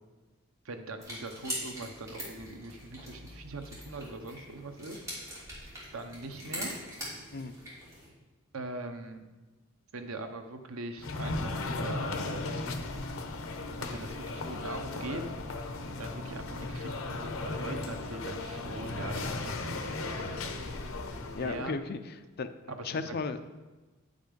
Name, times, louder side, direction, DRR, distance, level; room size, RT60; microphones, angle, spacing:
voice 1, 0.6-5.0 5.9-6.7 8.5-9.2 9.9-12.4 13.8-15.2 15.7-20.6 21.4-21.8 22.7-23.1, right 2 dB, 80° right, 6 dB, 0.9 m, -42 dB
sound 1, 1.0-8.1, equal, 15° right, 3.0 m, -42 dB
sound 2, 11.0-21.6, left 2 dB, 75° left, 0.9 m, -36 dB
voice 2, 21.3-22.5 22.8-23.4, left 4 dB, 50° left, 10 dB, 0.5 m, -35 dB
10.0 x 5.3 x 5.2 m, 1.2 s
head